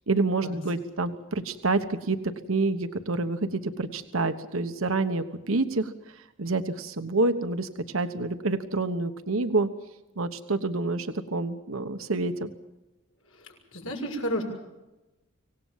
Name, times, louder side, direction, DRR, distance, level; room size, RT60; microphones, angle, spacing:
voice 1, 0.1-2.2 2.5-9.7 10.2-12.5, right 3 dB, 85° right, 8 dB, 1.2 m, -28 dB
voice 2, 13.2-14.4, equal, 90° left, 1 dB, 6.7 m, -33 dB
25.5 x 18.0 x 7.4 m, 1.0 s
head